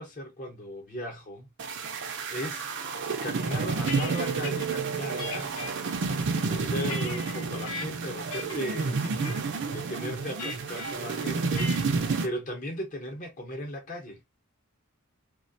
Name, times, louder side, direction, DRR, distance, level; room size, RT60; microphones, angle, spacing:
voice 1, 0.0-1.5 1.9-2.7 3.2-5.5 6.3-14.2, equal, 35° left, 0.8 m, -37 dB
sound 1, 1.6-12.3, right 4 dB, 55° right, 0.5 m, -30 dB
sound 2, 3.5-4.7 5.2-5.7 6.3-7.9 8.3-8.7 9.0-9.4 10.4-10.9 11.6-11.9, left 3 dB, 80° left, 0.6 m, -39 dB
2.4 x 2.1 x 2.5 m
head